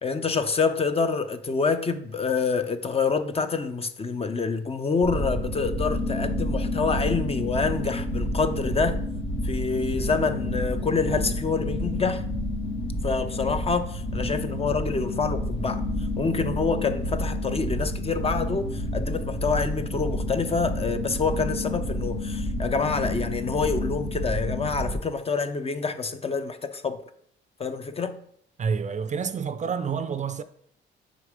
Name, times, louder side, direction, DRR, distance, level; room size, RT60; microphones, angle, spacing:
voice 1, 0.0-9.0 9.4-12.2 13.0-15.9 16.2-27.0 27.6-28.2, left 4 dB, 30° left, 0.6 m, -27 dB
sound 1, 5.0-24.9, left 1 dB, 75° left, 1.3 m, -29 dB
voice 2, 28.6-30.4, right 6 dB, 35° right, 0.5 m, -28 dB
6.5 x 3.7 x 5.1 m
cardioid pair, 90°, 20 cm